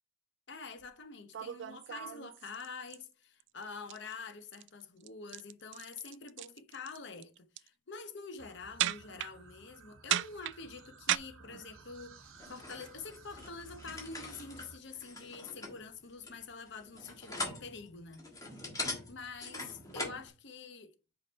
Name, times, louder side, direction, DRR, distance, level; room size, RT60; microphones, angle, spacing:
voice 1, 0.5-18.3 19.1-20.9, left 4 dB, 60° left, 0.8 m, -46 dB
sound 1, 0.8-0.9 1.3-3.0 3.4-3.6 3.9-4.1 4.4-4.7 5.0-7.0 7.2-7.7 8.8-9.3 10.1-11.2, right 12 dB, 60° right, 0.3 m, -35 dB
sound 2, 8.4-14.8, right 4 dB, 85° right, 0.9 m, -56 dB
sound 3, 12.4-20.3, left 2 dB, 15° left, 1.4 m, -43 dB
5.3 x 5.0 x 4.1 m
head